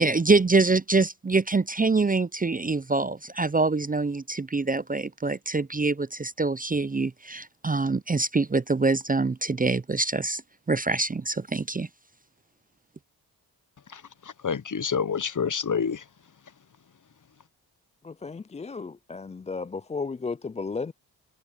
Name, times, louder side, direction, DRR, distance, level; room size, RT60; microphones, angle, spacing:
voice 1, 0.0-10.4 10.7-11.9, right 3 dB, 20° right, 0.6 m, -25 dB
voice 2, 13.9-16.0, left 6 dB, 45° left, 1.3 m, -28 dB
voice 3, 18.0-20.9, left 4 dB, 15° left, 0.4 m, -34 dB
supercardioid pair, 40°, 43 cm